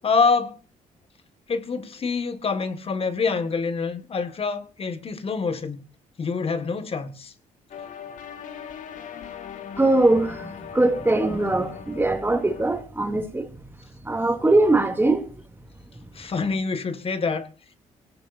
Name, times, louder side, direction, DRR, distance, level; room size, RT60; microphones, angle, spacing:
voice 1, 0.0-0.6 1.5-5.8 6.2-7.3 16.1-17.5, left 4 dB, 45° left, 1.9 m, -26 dB
sound 1, 7.7-12.8, left 8 dB, 70° left, 2.1 m, -39 dB
voice 2, 9.8-13.5 14.0-15.3, right 2 dB, 15° right, 2.8 m, -21 dB
24.0 x 17.5 x 2.7 m
cardioid pair, 85°, 14 cm